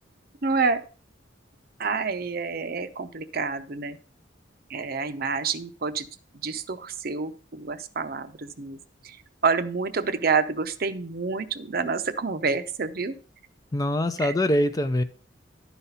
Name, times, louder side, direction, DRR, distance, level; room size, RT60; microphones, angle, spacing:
voice 1, 0.4-0.8 1.8-4.0 4.7-6.1 6.4-8.8 9.0-9.2 9.4-13.2 14.2-14.3, right 4 dB, 50° right, 11 dB, 0.6 m, -28 dB
voice 2, 13.7-15.0, left 1 dB, 20° left, 10 dB, 0.4 m, -23 dB
11.0 x 4.1 x 5.6 m, 0.40 s
head